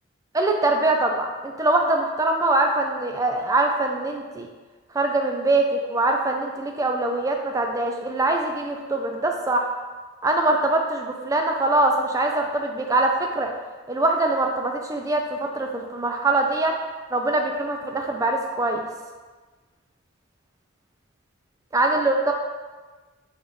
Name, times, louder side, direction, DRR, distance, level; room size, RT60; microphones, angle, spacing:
voice 1, 0.3-4.5 4.9-9.7 10.2-13.5 13.9-16.8 17.1-18.8 21.7-22.3, right 2 dB, 15° right, 2 dB, 0.3 m, -23 dB
4.2 x 3.4 x 3.1 m, 1.3 s
head